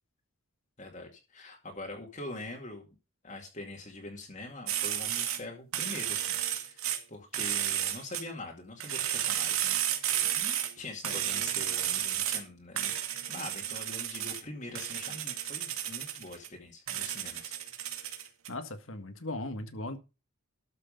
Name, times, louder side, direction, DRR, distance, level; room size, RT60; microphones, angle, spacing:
voice 1, 0.8-2.9 3.2-9.8 10.2-12.9 13.3-17.5, left 2 dB, 35° left, 2.3 m, -44 dB
sound 1, 4.7-5.4 5.7-7.0 7.3-8.2 8.8-10.7 11.0-12.4 12.8-14.4 14.7-16.5 16.9-18.5, right 11 dB, 85° right, 2.3 m, -32 dB
voice 2, 18.5-20.0, left 2 dB, 70° left, 1.7 m, -38 dB
13.0 x 6.5 x 5.3 m
head